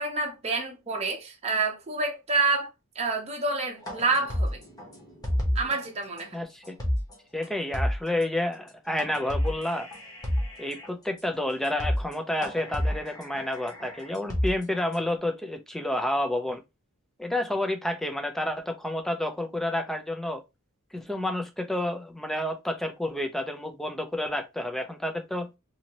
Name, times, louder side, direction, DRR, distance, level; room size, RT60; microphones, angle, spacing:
voice 1, 0.0-2.7 2.9-4.6 5.5-6.4, right 3 dB, 30° right, 0.8 m, -28 dB
sound 1, 3.8-5.8 6.2-6.3 6.6-7.1 7.4-7.5 7.7-8.2 9.0-10.9 11.3-11.4 11.6-12.1 12.4-14.9, equal, 20° left, 1.0 m, -30 dB
voice 2, 6.3-6.8 7.3-9.9 10.6-16.6 17.2-20.4 20.9-25.5, left 1 dB, ahead, 0.5 m, -30 dB
2.7 x 2.7 x 2.9 m
head